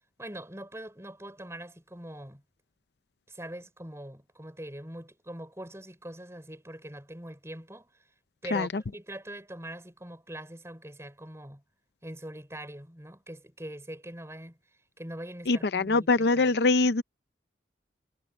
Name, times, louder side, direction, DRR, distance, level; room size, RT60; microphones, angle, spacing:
voice 1, 0.2-2.4 3.3-7.9 8.4-11.6 12.0-14.6 15.0-16.5, right 1 dB, 15° right, 5.3 m, -42 dB
voice 2, 8.5-8.8 15.5-17.0, left 3 dB, 60° left, 0.6 m, -24 dB
head